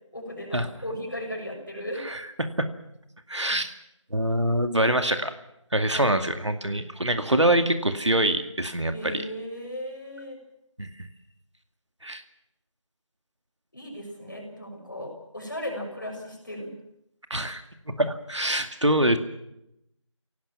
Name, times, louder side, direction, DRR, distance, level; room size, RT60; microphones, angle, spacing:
voice 1, 0.1-2.1 5.9-6.2 8.9-10.4 13.7-16.8, equal, 40° left, 1 dB, 6.7 m, -36 dB
voice 2, 3.3-3.7 4.1-5.3 5.7-9.2 10.8-11.1 12.0-12.2 17.3-19.2, right 1 dB, 65° right, 8 dB, 2.2 m, -25 dB
26.0 x 18.0 x 7.4 m, 0.83 s
figure-of-eight pair, 175°, 16 cm